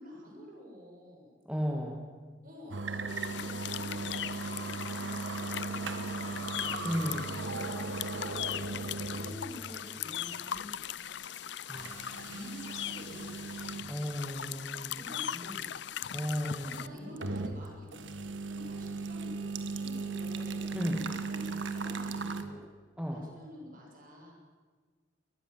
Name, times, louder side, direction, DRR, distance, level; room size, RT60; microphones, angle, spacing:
voice 1, 0.0-1.4 2.4-7.0 7.6-8.7 9.0-10.8 12.2-13.6 15.0-15.9 16.7-18.0 18.4-20.7 21.0-22.6 23.0-24.3, left 1 dB, 45° right, -1 dB, 7.5 m, -49 dB
voice 2, 1.5-2.0 6.8-7.3 11.7-12.2 13.9-15.0 16.1-16.9 20.7-21.1 23.0-23.3, equal, 5° right, -1 dB, 2.1 m, -34 dB
sound 1, 2.7-9.4 9.7-9.8 10.6-10.7 11.7-13.9 14.4-14.5 16.6-17.6 17.9-22.4, right 3 dB, 75° right, 1.7 m, -37 dB
sound 2, 3.1-16.9, left 10 dB, 65° left, 0.6 m, -39 dB
23.5 x 20.0 x 7.6 m, 1.5 s
head